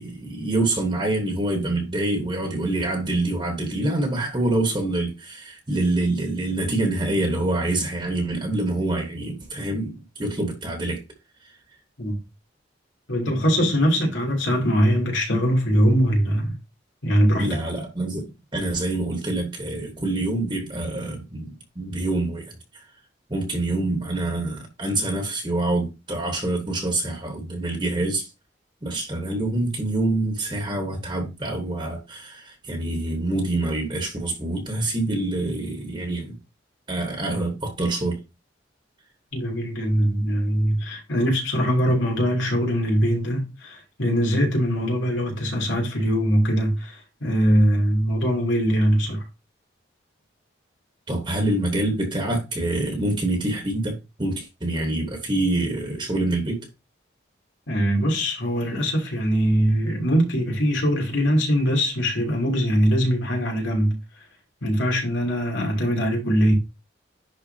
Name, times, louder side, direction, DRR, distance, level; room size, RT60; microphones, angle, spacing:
voice 1, 0.0-11.0 11.4-11.5 17.4-22.9 23.3-28.3 28.8-36.4 36.9-38.2 51.1-56.7, right 2 dB, 25° right, 1.3 m, -26 dB
voice 2, 13.1-16.6 17.0-17.6 39.3-49.2 57.7-64.0 64.6-66.5, equal, 85° left, 3.1 m, -22 dB
10.5 x 4.0 x 2.8 m
head